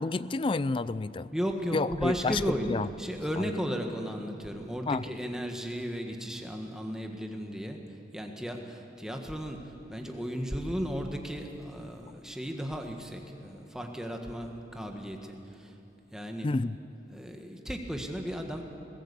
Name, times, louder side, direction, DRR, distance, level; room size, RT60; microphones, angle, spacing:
voice 1, 0.0-1.3 1.7-2.4 2.7-2.9 3.4-3.5 4.9-5.0 16.4-16.8, left 3 dB, 30° left, 17 dB, 0.4 m, -29 dB
voice 2, 1.3-2.7 3.0-7.8 8.1-9.6 9.9-15.7 16.1-16.5 17.1-18.6, equal, 5° right, 3 dB, 1.6 m, -35 dB
20.5 x 17.0 x 8.3 m, 2.9 s
head